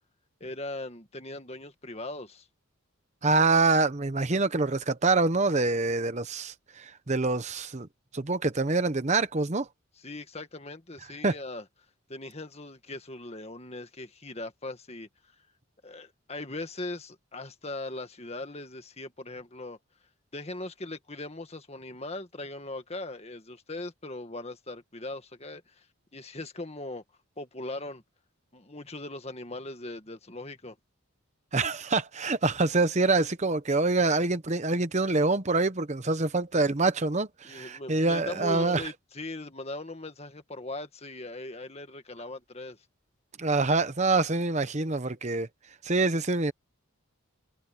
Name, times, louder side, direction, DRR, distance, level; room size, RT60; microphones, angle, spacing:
voice 1, 0.4-2.5 10.0-11.6 12.1-15.1 15.8-19.8 20.3-25.9 26.1-27.0 27.4-28.0 28.5-30.8 37.4-42.8, left 2 dB, 30° left, 1.8 m, -39 dB
voice 2, 3.2-7.9 8.1-9.7 11.2-11.4 31.5-38.8 43.4-45.5 45.8-46.5, right 3 dB, 30° right, 0.9 m, -25 dB
head